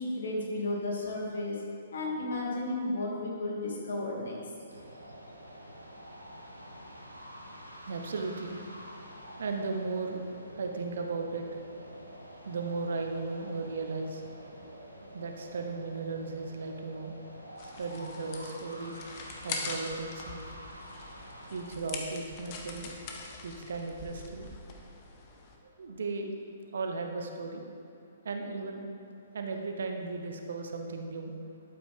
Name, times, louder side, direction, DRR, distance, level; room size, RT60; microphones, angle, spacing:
voice 1, 0.0-1.6 1.9-4.4, left 2 dB, 60° left, -3 dB, 2.6 m, -33 dB
sound 1, 4.7-21.7, equal, 90° right, 1.3 m, -48 dB
voice 2, 7.9-8.6 9.4-10.2 10.6-11.5 12.4-14.4 15.1-17.1 17.6-19.0 19.4-20.6 21.5-23.1 23.4-24.5 25.8-26.3 26.7-27.6 28.2-28.9 29.3-31.3, right 3 dB, 60° right, 4 dB, 1.0 m, -36 dB
sound 2, 17.6-25.6, left 4 dB, 35° left, 1.2 m, -43 dB
12.5 x 8.8 x 3.7 m, 2.6 s
figure-of-eight pair, 120°, 0 cm